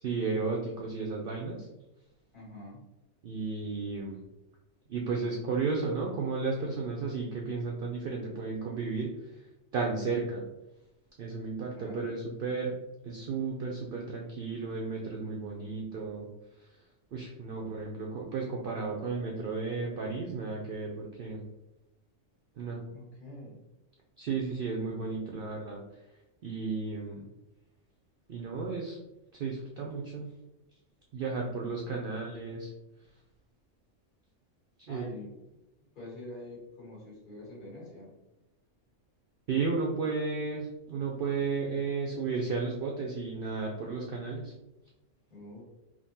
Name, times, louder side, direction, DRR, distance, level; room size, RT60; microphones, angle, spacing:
voice 1, 0.0-1.7 3.2-4.2 4.9-9.3 9.7-10.4 11.2-12.8 13.0-16.3 16.6-16.7 17.1-21.4 22.6-22.8 24.2-25.8 26.4-27.3 28.3-29.0 29.3-30.3 31.1-32.7 34.9-35.1 39.5-44.5, right 4 dB, 65° right, -1 dB, 0.5 m, -33 dB
voice 2, 2.3-2.8 11.7-12.1 22.9-23.6 25.2-25.3 31.8-32.0 34.9-35.3 35.9-38.1 45.3-45.6, left 2 dB, 40° left, -5 dB, 1.4 m, -46 dB
3.6 x 2.6 x 2.7 m, 0.95 s
omnidirectional pair, 1.3 m